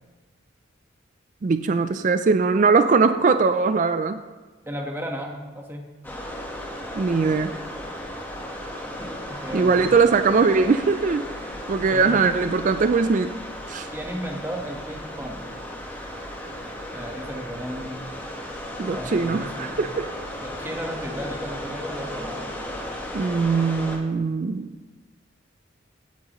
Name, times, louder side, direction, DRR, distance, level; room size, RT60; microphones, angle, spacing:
voice 1, 1.4-4.2 7.0-7.5 9.5-11.2 11.7-13.3 13.7-13.9 18.8-20.1 23.1-24.7, right 4 dB, 40° right, 9 dB, 0.3 m, -21 dB
voice 2, 4.6-5.9 9.3-9.9 11.9-12.2 13.9-15.5 16.9-18.0 18.9-19.7 20.4-22.5, equal, 10° right, 1 dB, 1.2 m, -34 dB
sound 1, 6.0-24.0, left 1 dB, 10° left, 1.2 m, -35 dB
16.5 x 9.4 x 3.0 m, 1.3 s
head